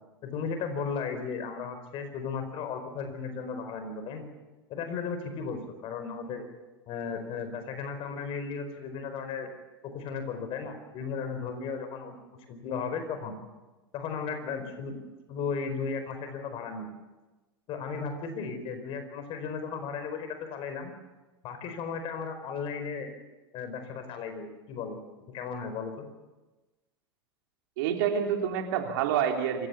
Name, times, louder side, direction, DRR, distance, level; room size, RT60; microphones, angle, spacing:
voice 1, 0.2-4.3 4.7-6.5 6.9-9.5 9.8-13.4 13.9-15.0 15.3-16.9 17.7-20.9 21.4-23.1 23.5-25.0 25.3-26.0, left 5 dB, 45° left, 8 dB, 4.9 m, -35 dB
voice 2, 27.8-29.7, right 8 dB, 60° right, 3 dB, 3.5 m, -27 dB
26.5 x 16.5 x 7.2 m, 1.2 s
hypercardioid pair, 90°, 13 cm